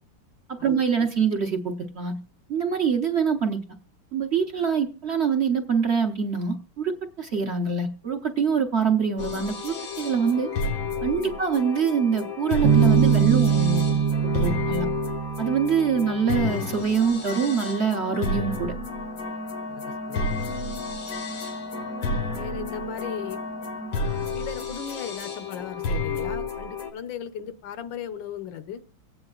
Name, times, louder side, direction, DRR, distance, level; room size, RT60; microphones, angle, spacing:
voice 1, 0.5-2.2 2.5-3.6 4.1-10.5 11.0-14.9 15.4-18.7, right 6 dB, 45° right, 4 dB, 1.0 m, -24 dB
sound 1, 9.2-26.9, left 3 dB, 90° left, 2.3 m, -31 dB
Bass guitar, 12.6-16.3, right 8 dB, 90° right, 1.5 m, -22 dB
voice 2, 19.7-20.3 22.3-23.4 24.3-28.8, left 8 dB, 70° left, 11 dB, 1.5 m, -37 dB
24.5 x 8.8 x 2.4 m, 0.37 s
omnidirectional pair, 2.1 m